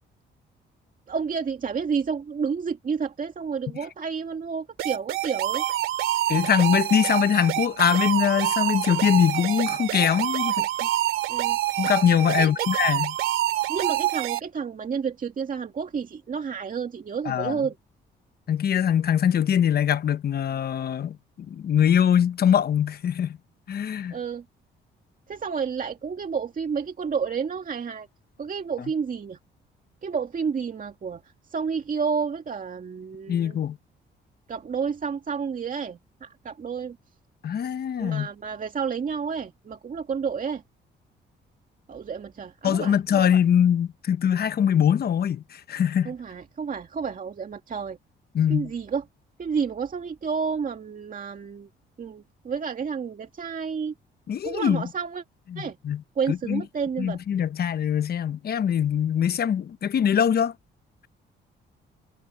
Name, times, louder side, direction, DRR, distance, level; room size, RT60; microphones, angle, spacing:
voice 1, 1.1-5.6 11.3-11.6 12.4-12.7 13.7-17.8 24.1-24.4 25.3-28.1 28.4-29.4 30.0-31.2 31.5-33.6 34.5-37.0 38.0-40.6 41.9-43.3 46.1-48.0 48.5-49.0 49.4-51.7 52.0-53.9 54.4-55.2 55.6-55.8 56.2-57.2, right 6 dB, 45° right, 2.1 m, -30 dB
sound 1, 4.8-14.4, right 14 dB, 90° right, 2.7 m, -26 dB
voice 2, 6.3-10.9 11.8-13.1 17.2-17.6 18.5-21.2 21.5-23.4 23.7-24.1 33.3-33.8 37.4-38.3 42.6-46.1 48.3-48.7 54.3-54.8 55.5-56.0 56.3-56.6 57.0-60.5, left 9 dB, 55° left, 1.0 m, -23 dB
cardioid pair, 90°, 20 cm